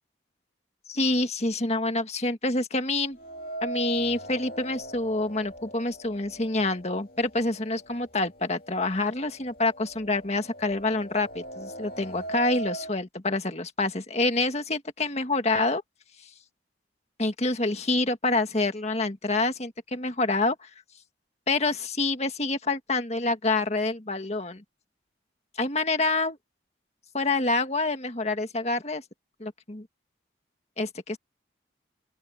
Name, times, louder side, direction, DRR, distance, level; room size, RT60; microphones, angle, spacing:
voice 1, 0.9-3.2 3.6-15.8 17.2-20.7 21.5-24.6 25.6-26.4 27.1-29.0 29.4-29.9 30.8-31.2, left 2 dB, 35° left, 1.8 m, -27 dB
sound 1, 3.2-7.2 7.6-7.7 8.6-8.7 9.1-13.0, right 2 dB, 50° left, 2.9 m, -39 dB
open air
head